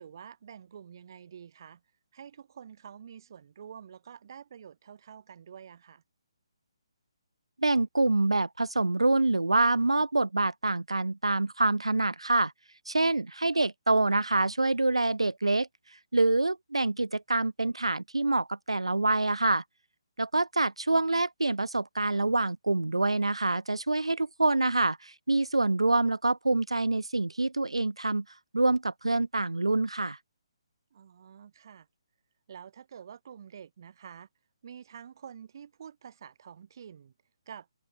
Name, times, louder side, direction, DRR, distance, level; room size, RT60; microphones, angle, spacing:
voice 1, 0.0-1.8 2.1-6.0 13.5-13.7 30.9-31.9 32.5-34.3 34.6-37.1 37.5-37.7, right 8 dB, 45° right, 6.6 m, -48 dB
voice 2, 7.6-12.5 12.9-15.7 16.1-19.6 20.2-28.2 28.5-30.2, right 2 dB, 80° right, 0.7 m, -26 dB
figure-of-eight pair, 140°, 3 cm